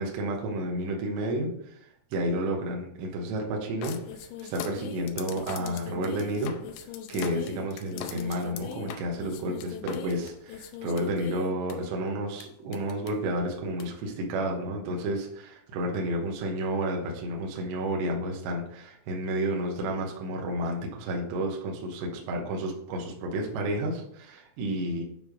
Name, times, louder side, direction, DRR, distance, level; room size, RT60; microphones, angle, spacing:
voice 1, 0.0-4.0 4.4-6.5 7.1-25.0, right 1 dB, 70° right, 0 dB, 3.0 m, -31 dB
sound 1, 3.8-11.7 12.4-12.5 12.7-13.1 13.8-13.9, left 8 dB, 80° left, 3.0 m, -40 dB
9.2 x 3.5 x 5.0 m, 0.69 s
omnidirectional pair, 5.7 m